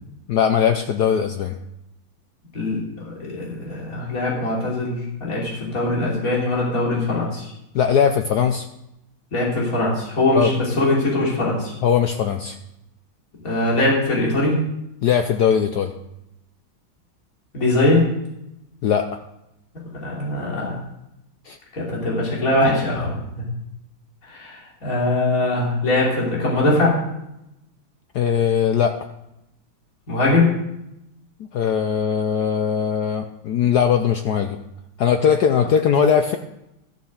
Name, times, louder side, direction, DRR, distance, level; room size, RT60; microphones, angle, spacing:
voice 1, 0.3-1.6 7.7-8.7 10.3-10.5 11.8-12.6 15.0-15.9 18.8-19.0 21.5-21.6 28.1-28.9 31.4-34.6 35.0-36.4, left 7 dB, 70° left, 6 dB, 0.9 m, -20 dB
voice 2, 2.5-7.5 9.3-11.7 13.4-14.6 17.5-18.1 20.0-20.8 21.7-23.4 24.3-27.0 30.1-30.5, left 2 dB, 40° left, -4 dB, 3.6 m, -21 dB
13.5 x 7.1 x 6.4 m, 0.86 s
omnidirectional pair, 2.4 m